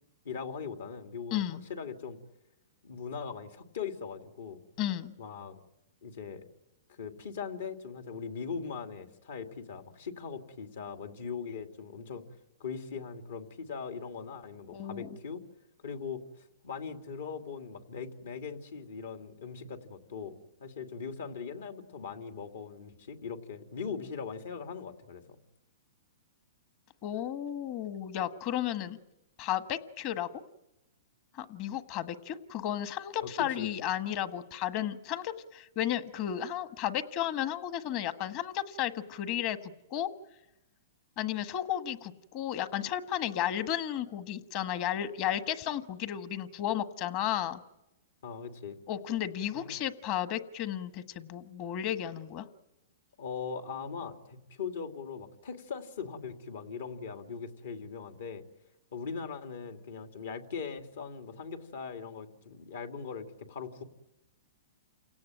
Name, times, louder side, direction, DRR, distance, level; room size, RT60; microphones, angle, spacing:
voice 1, 0.2-2.2 2.8-4.6 5.2-5.6 6.0-6.4 6.9-12.2 12.6-15.4 15.8-16.2 16.6-20.3 20.6-25.2 33.2-33.3 33.6-33.7 48.2-48.8 49.6-49.7 53.2-58.4 58.9-63.8, left 6 dB, 75° left, 6 dB, 2.6 m, -40 dB
voice 2, 1.3-1.6 4.8-5.1 14.7-15.1 27.0-29.0 29.4-30.3 31.3-40.1 41.2-47.6 48.9-52.5, left 11 dB, 40° left, 12 dB, 1.4 m, -33 dB
29.0 x 17.5 x 9.1 m, 0.97 s
hypercardioid pair, 145°, 0 cm